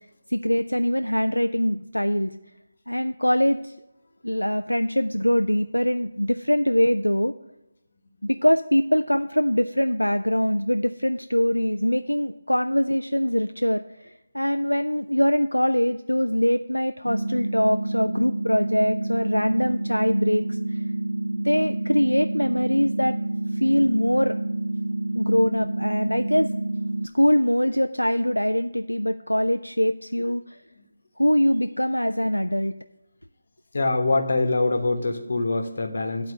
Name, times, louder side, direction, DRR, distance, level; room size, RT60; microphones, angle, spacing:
voice 1, 0.3-2.3 2.9-3.7 4.2-7.3 8.2-20.6 21.3-23.1 23.5-24.4 25.1-26.5 27.1-30.6 31.2-32.7, equal, 85° left, 9 dB, 0.3 m, -23 dB
sound 1, 17.1-27.1, right 2 dB, 65° right, 0.4 m, -28 dB
voice 2, 33.7-36.3, left 2 dB, 50° left, 5 dB, 1.2 m, -24 dB
10.5 x 4.2 x 6.2 m, 0.98 s
figure-of-eight pair, 155°, 0 cm